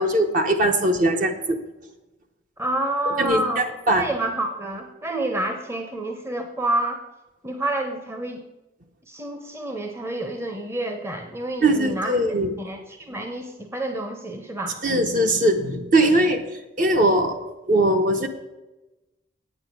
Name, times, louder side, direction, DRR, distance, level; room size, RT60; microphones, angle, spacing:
voice 1, 0.0-1.6 3.2-4.1 11.6-12.5 14.8-16.4 16.8-17.4 17.7-18.3, right 1 dB, 45° right, 5 dB, 0.9 m, -20 dB
voice 2, 2.6-3.6 4.0-7.0 7.4-8.5 9.1-14.8, right 1 dB, 15° right, 5 dB, 0.8 m, -28 dB
8.9 x 8.8 x 6.0 m, 1.0 s
head